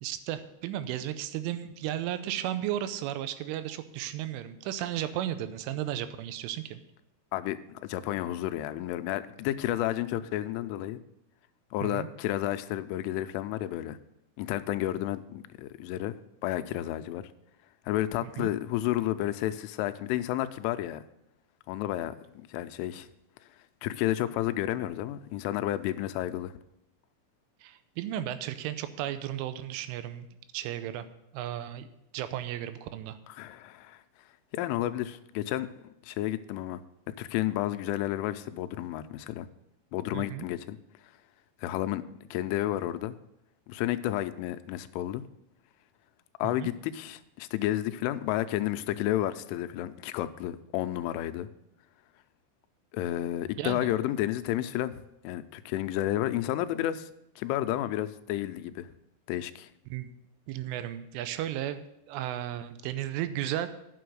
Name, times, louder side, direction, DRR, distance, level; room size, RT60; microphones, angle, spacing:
voice 1, 0.0-6.8 11.8-12.1 18.2-18.5 27.6-30.3 30.5-31.1 31.3-31.9 32.1-33.2 40.1-40.5 46.4-46.7 53.6-53.9 59.9-60.1 60.5-63.7, right 12 dB, 90° right, 11 dB, 3.2 m, -34 dB
voice 2, 7.3-11.0 11.7-14.0 14.4-16.2 16.4-17.2 17.9-21.0 21.7-22.1 22.5-23.1 23.8-26.5 33.3-34.0 34.5-35.7 36.0-36.8 37.2-39.5 39.9-40.8 41.6-42.0 42.3-43.1 43.7-45.2 46.4-51.5 52.9-57.1 57.4-58.9 59.3-59.7, left 13 dB, 90° left, 11 dB, 3.1 m, -31 dB
9.3 x 6.8 x 6.3 m, 0.83 s
omnidirectional pair, 5.5 m